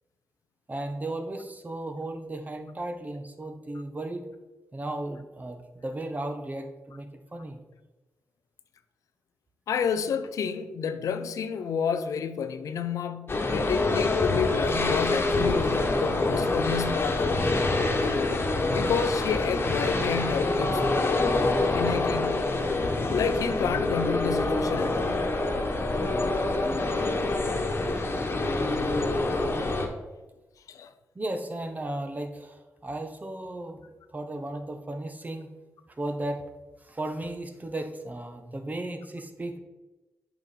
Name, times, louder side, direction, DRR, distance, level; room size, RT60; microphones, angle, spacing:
voice 1, 0.7-4.3 4.7-7.6 31.1-33.8 34.1-35.5 36.0-36.4 36.8-39.6, right 1 dB, 30° right, 1.3 m, -35 dB
voice 2, 9.7-17.4 18.0-18.4 18.7-20.8 21.7-22.5 23.1-25.3 30.7-30.9, left 6 dB, 75° left, 0.6 m, -30 dB
sound 1, 13.3-29.9, left 2 dB, 40° left, 1.4 m, -26 dB
8.0 x 5.2 x 4.5 m
cardioid pair, 55°, 6 cm